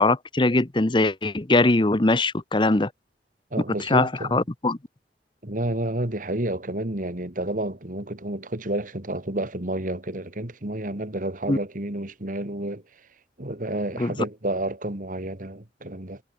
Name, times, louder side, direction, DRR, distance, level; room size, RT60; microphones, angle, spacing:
voice 1, 0.0-2.9 3.9-4.8 11.5-11.6 14.0-14.1, left 2 dB, 25° left, 0.9 m, -21 dB
voice 2, 3.5-4.4 5.4-12.8 13.4-16.2, right 1 dB, 50° right, 2.4 m, -30 dB
head